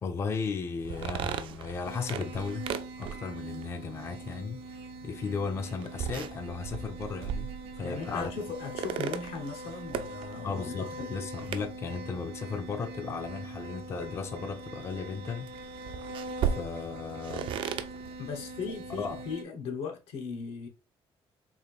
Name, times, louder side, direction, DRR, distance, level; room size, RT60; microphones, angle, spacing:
voice 1, 0.0-2.7 3.0-7.5 7.8-8.3 10.4-15.5 16.4-17.6 19.0-19.2, left 5 dB, 25° left, 0.4 m, -35 dB
sound 1, 0.8-19.3, right 8 dB, 60° right, 0.4 m, -39 dB
sound 2, 1.8-19.4, right 2 dB, 80° right, 0.7 m, -43 dB
voice 2, 7.8-11.1 18.2-20.7, left 5 dB, 85° left, 1.1 m, -38 dB
3.8 x 2.5 x 3.4 m
cardioid pair, 160°, 10 cm